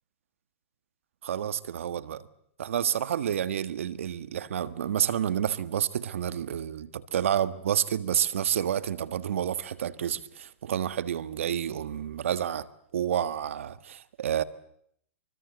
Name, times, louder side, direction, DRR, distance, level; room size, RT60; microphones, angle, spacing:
voice 1, 1.2-2.2 2.6-12.7 12.9-14.4, right 9 dB, 75° right, 1.6 m, -29 dB
24.5 x 24.5 x 8.1 m
hypercardioid pair, 135°, 7 cm